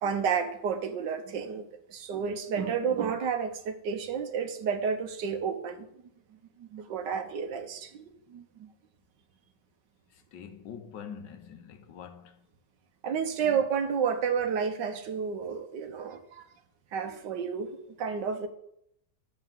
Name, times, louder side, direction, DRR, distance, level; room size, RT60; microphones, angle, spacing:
voice 1, 0.0-5.9 6.6-8.4 13.0-16.4 16.9-18.5, right 6 dB, 85° right, 1.6 m, -31 dB
voice 2, 10.1-12.5 13.4-13.6, left 7 dB, 85° left, 1.6 m, -45 dB
11.0 x 4.6 x 7.4 m
omnidirectional pair, 1.9 m